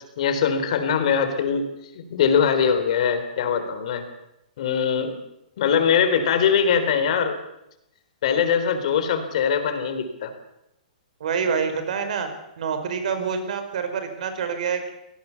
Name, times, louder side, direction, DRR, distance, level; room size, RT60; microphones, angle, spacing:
voice 1, 0.2-1.7 1.9-4.1 4.6-5.2 5.6-7.4 8.2-10.3, left 7 dB, 50° left, 9 dB, 3.7 m, -22 dB
voice 2, 11.2-12.3 12.6-14.9, right 6 dB, 60° right, 8 dB, 4.9 m, -26 dB
24.5 x 17.5 x 7.1 m, 0.86 s
hypercardioid pair, 165°, 5 cm